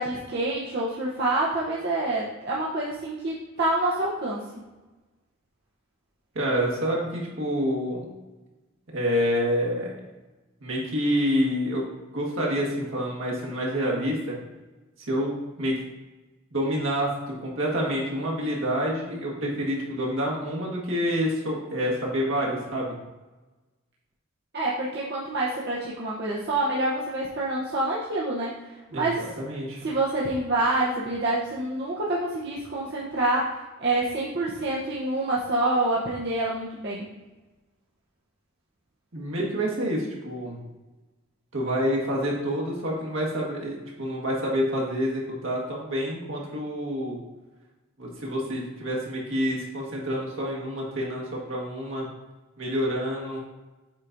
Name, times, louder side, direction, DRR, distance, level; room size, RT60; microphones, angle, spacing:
voice 1, 0.0-4.4 24.5-28.5 28.9-29.2 29.8-37.1, right 2 dB, 55° right, -6 dB, 0.9 m, -27 dB
voice 2, 6.3-8.1 8.9-10.0 10.6-11.9 12.1-14.4 15.1-15.8 16.5-23.0 28.9-29.8 39.1-40.6 41.5-47.2 48.0-52.1 52.6-53.4, equal, 70° right, -3 dB, 1.6 m, -28 dB
7.4 x 4.8 x 2.6 m, 1.1 s
head